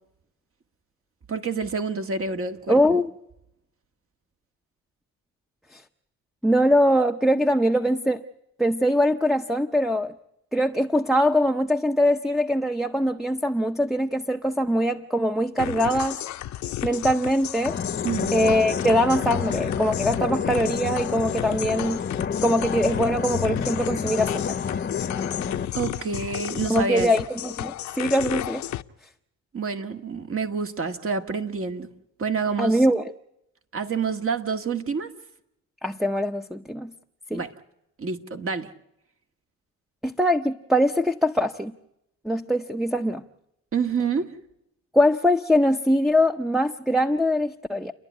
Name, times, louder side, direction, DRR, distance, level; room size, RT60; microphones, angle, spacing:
voice 1, 1.3-3.0 18.0-18.3 25.8-27.1 29.5-31.9 32.2-32.8 33.7-35.1 37.3-37.5 38.0-38.7 43.7-44.3, right 5 dB, 45° right, 1.9 m, -28 dB
voice 2, 2.7-3.1 5.7-5.8 6.4-8.2 8.6-10.1 10.5-16.2 16.8-17.8 18.3-22.1 22.4-24.6 26.7-28.6 32.6-33.0 35.8-36.9 37.3-37.4 40.0-41.7 42.2-43.2 44.9-47.9, equal, ahead, 0.7 m, -22 dB
sound 1, 15.6-28.8, left 13 dB, 70° left, 0.8 m, -33 dB
sound 2, 17.7-25.7, left 6 dB, 35° left, 0.9 m, -29 dB
30.0 x 11.5 x 9.6 m
cardioid pair, 90°, 30 cm